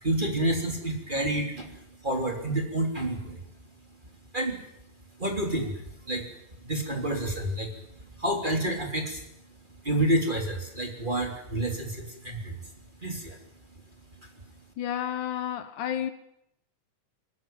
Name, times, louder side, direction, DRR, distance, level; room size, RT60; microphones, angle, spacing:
voice 1, 0.0-3.4 4.3-4.6 5.2-6.3 6.6-7.8 8.2-9.2 9.8-12.6 13.0-13.4, right 1 dB, 15° right, 3.0 m, -29 dB
voice 2, 14.8-16.1, left 10 dB, 75° left, 2.6 m, -31 dB
21.5 x 19.0 x 9.0 m
omnidirectional pair, 3.7 m